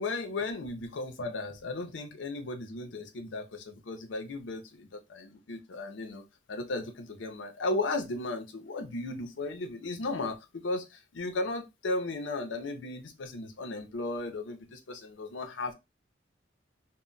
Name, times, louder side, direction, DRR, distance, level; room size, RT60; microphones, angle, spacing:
voice 1, 0.0-6.2 6.5-15.7, left 2 dB, 85° left, 0.5 m, -35 dB
2.2 x 2.0 x 3.8 m
head